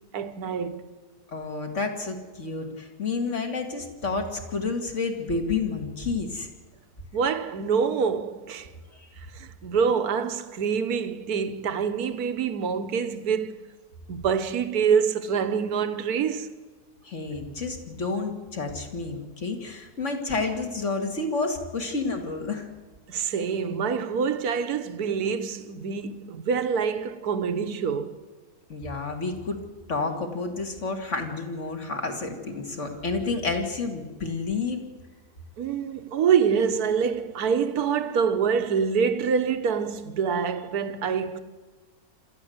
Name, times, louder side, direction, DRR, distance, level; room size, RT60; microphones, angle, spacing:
voice 1, 0.1-0.8 7.1-8.7 9.3-13.6 14.1-16.5 23.1-28.2 35.6-41.4, right 6 dB, 60° right, 1.6 m, -26 dB
voice 2, 1.3-6.5 9.0-9.1 17.0-22.7 28.7-29.6 29.9-34.8, left 3 dB, 40° left, 2.6 m, -30 dB
27.0 x 14.0 x 7.9 m
omnidirectional pair, 1.9 m